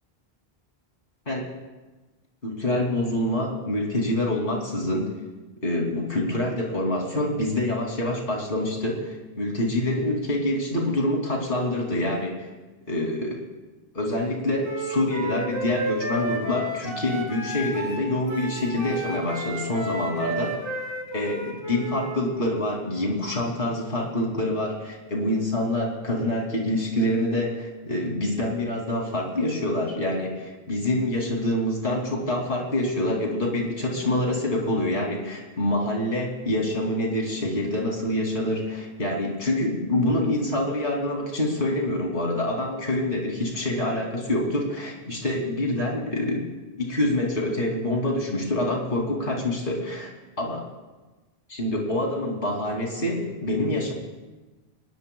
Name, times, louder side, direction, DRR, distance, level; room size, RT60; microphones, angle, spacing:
voice 1, 2.4-5.1 5.6-12.5 12.9-13.4 13.9-20.6 21.1-46.5 46.8-50.1 50.4-50.6 51.6-53.9, left 1 dB, 60° left, -1 dB, 3.2 m, -26 dB
Wind instrument woodwind instrument, 14.6-22.2, right 1 dB, 25° right, 2.9 m, -32 dB
25.0 x 20.5 x 2.3 m, 1.2 s
omnidirectional pair, 1.1 m